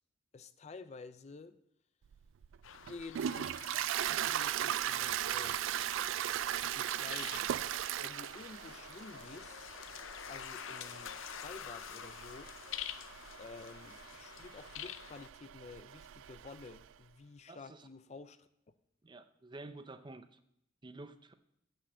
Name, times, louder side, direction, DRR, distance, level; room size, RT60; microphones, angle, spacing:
voice 1, 0.3-1.6 2.9-5.6 6.6-7.5 8.0-9.6 10.3-12.5 13.4-18.5, left 4 dB, 35° left, 12 dB, 0.4 m, -51 dB
Toilet flush, 2.1-16.9, right 11 dB, 80° right, 0.3 m, -38 dB
sound 1, 2.6-15.3, left 9 dB, 90° left, 0.6 m, -48 dB
voice 2, 17.5-17.9 19.0-20.4 20.8-21.3, right 2 dB, 25° right, 11 dB, 0.6 m, -50 dB
8.4 x 6.3 x 7.7 m, 0.76 s
head